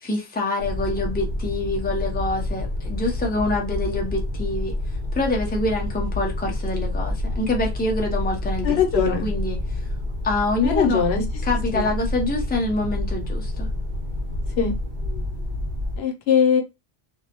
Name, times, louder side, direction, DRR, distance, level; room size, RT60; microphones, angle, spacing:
voice 1, 0.0-4.7 5.1-9.8 10.2-11.0 11.4-13.7, left 2 dB, 10° left, 0.5 m, -26 dB
sound 1, 0.6-16.0, left 1 dB, 65° right, 1.0 m, -28 dB
voice 2, 8.6-9.3 10.6-11.2 11.7-11.9 14.6-14.7 16.0-16.6, left 7 dB, 80° left, 0.9 m, -21 dB
2.6 x 2.0 x 2.8 m
omnidirectional pair, 1.1 m